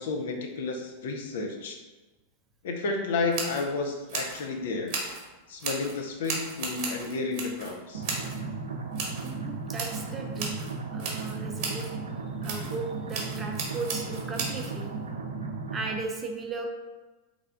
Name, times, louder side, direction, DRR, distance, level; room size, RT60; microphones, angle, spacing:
voice 1, 0.0-1.8 2.6-4.9 5.5-8.0, left 3 dB, 60° left, 3 dB, 0.5 m, -31 dB
sound 1, 3.3-3.6 4.1-4.4 4.9-5.2 5.6-6.0 6.2-7.7 8.0-8.4 8.9-9.3 9.7-10.1 10.4-10.7 11.0-11.9 12.4-12.8 13.1-14.7, right 4 dB, 40° right, 1.0 m, -35 dB
sound 2, 7.9-15.9, right 4 dB, 70° right, 0.5 m, -35 dB
voice 2, 9.2-10.6 10.9-11.9 12.4-14.9 15.7-16.7, right 4 dB, 20° right, 2 dB, 0.6 m, -36 dB
3.5 x 3.2 x 3.7 m, 1.2 s
figure-of-eight pair, 90°, 0 cm